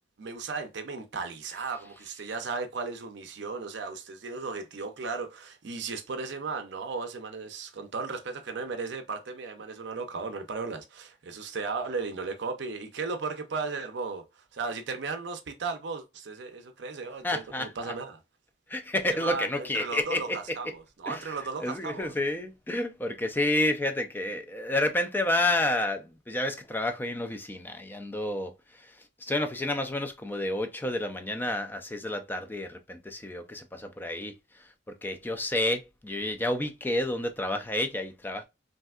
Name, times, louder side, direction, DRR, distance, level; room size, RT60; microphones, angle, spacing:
voice 1, 0.2-18.2 19.1-22.1, right 4 dB, 60° right, 0.5 m, -35 dB
voice 2, 17.2-17.7 18.7-20.4 21.1-21.3 21.6-28.5 28.8-28.9 29.2-34.3 34.9-38.4, left 1 dB, 10° left, 0.3 m, -30 dB
3.2 x 2.6 x 2.3 m
head